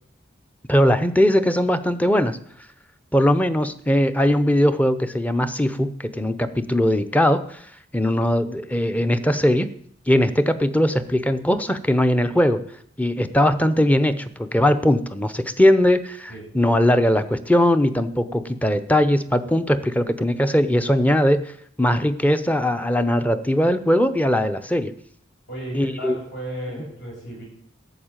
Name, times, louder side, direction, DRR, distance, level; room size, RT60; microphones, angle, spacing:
voice 1, 0.7-2.4 3.1-7.6 7.9-9.7 10.1-12.6 13.0-21.5 21.8-24.9 25.7-26.2, left 1 dB, 10° left, 11 dB, 0.8 m, -20 dB
voice 2, 25.5-27.4, equal, 60° left, -3 dB, 7.5 m, -34 dB
13.0 x 7.2 x 9.0 m, 0.64 s
head